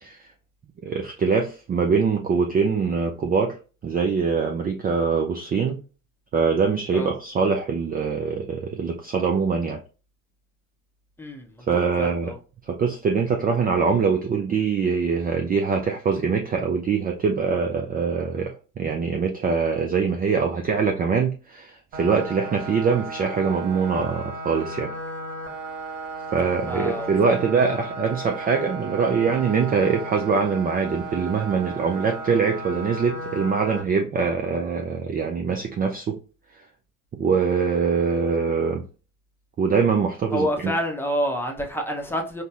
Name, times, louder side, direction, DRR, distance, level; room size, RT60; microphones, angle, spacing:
voice 1, 0.8-3.6 3.8-5.8 6.3-9.8 11.7-12.3 12.7-24.9 26.3-36.2 37.1-38.8 39.6-40.7, right 5 dB, 20° right, 0.4 m, -23 dB
voice 2, 11.2-11.6 12.0-12.4 26.7-27.8 40.3-42.4, equal, 5° left, 0.7 m, -28 dB
sound 1, 21.9-33.8, right 2 dB, 60° right, 1.3 m, -35 dB
5.2 x 2.1 x 2.4 m
hypercardioid pair, 65°, 42 cm